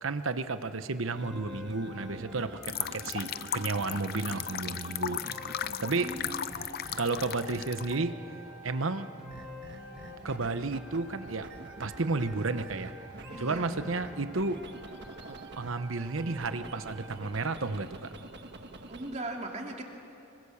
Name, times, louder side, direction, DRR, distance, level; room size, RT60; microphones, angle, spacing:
voice 1, 0.0-5.2 5.8-6.2 7.0-8.2 8.6-9.1 10.2-11.5 11.8-12.9 13.4-14.7 15.3-18.1, right 3 dB, 80° right, 11 dB, 1.0 m, -32 dB
sound 1, 1.1-8.3 9.3-11.0 11.3-15.7 16.1-19.1, right 2 dB, 55° right, 1.5 m, -47 dB
sound 2, 1.2-17.2, equal, 5° right, 4.7 m, -48 dB
sound 3, 2.6-8.0, left 10 dB, 50° left, 0.5 m, -36 dB
voice 2, 6.0-6.4 13.3-13.7 18.9-19.8, right 2 dB, 35° right, 1 dB, 2.8 m, -38 dB
25.5 x 23.5 x 7.2 m, 2.7 s
head